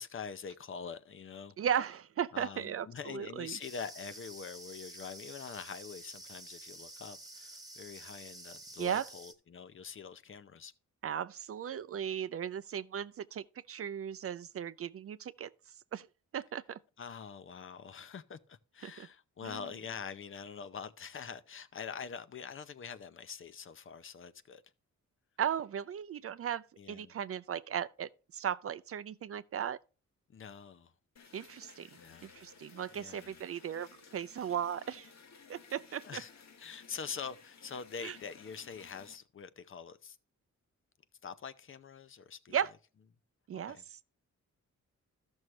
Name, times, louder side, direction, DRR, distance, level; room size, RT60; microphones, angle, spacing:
voice 1, 0.0-1.5 2.3-10.7 17.0-24.6 26.8-27.1 30.3-30.9 32.0-32.3 32.9-33.3 36.0-36.3 36.6-40.2 41.2-42.6 43.6-43.8, left 6 dB, 45° left, 0.6 m, -45 dB
voice 2, 1.6-3.6 8.8-9.0 11.0-15.5 15.9-16.1 16.3-16.8 18.8-19.1 19.4-19.7 25.4-29.8 31.3-31.9 32.2-35.1 35.5-36.2 38.0-38.2 42.5-42.7 43.5-44.0, right 9 dB, 50° right, 0.4 m, -36 dB
sound 1, 3.6-9.3, right 2 dB, 10° right, 1.1 m, -50 dB
sound 2, 31.2-39.2, left 5 dB, 65° left, 1.4 m, -57 dB
14.0 x 6.3 x 3.2 m
wide cardioid pair, 145°, 30 cm